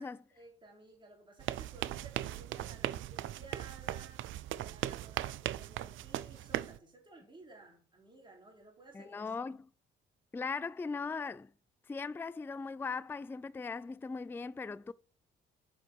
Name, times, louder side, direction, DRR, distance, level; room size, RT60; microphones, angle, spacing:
voice 1, 0.0-4.2 4.5-9.5, right 2 dB, 25° right, 3.7 m, -56 dB
sound 1, 1.4-6.8, right 13 dB, 75° right, 0.5 m, -38 dB
voice 2, 8.9-9.6 10.3-11.5 11.9-14.9, left 4 dB, 10° left, 0.3 m, -39 dB
7.8 x 5.7 x 6.2 m
cardioid pair, 90°, 20 cm